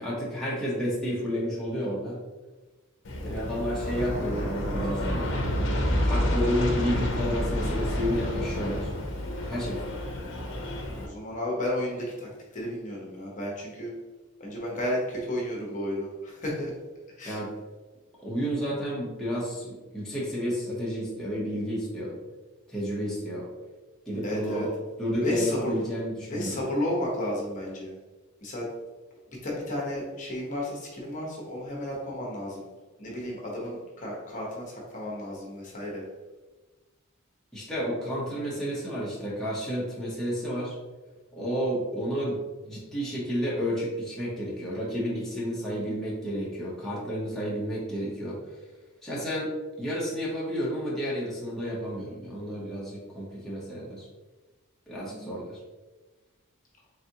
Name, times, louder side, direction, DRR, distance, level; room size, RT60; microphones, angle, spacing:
voice 1, 0.0-2.2 3.2-5.3 6.0-8.9 9.5-9.9 17.2-17.5 18.2-22.1 22.7-23.5 24.1-24.7 25.0-26.6 37.5-40.7 41.3-42.4 42.6-48.4 49.0-49.5 49.8-54.1 54.9-55.6, equal, ahead, -8 dB, 0.9 m, -31 dB
Aircraft, 3.0-11.1, left 1 dB, 60° left, 0.7 m, -29 dB
voice 2, 11.0-13.9 14.4-16.7 17.2-17.4 24.2-24.7 25.2-25.8 26.3-27.9 28.4-28.7 29.3-32.7 33.0-36.0 55.1-55.4, left 1 dB, 35° left, -3 dB, 1.0 m, -32 dB
4.0 x 3.5 x 2.8 m, 1.2 s
head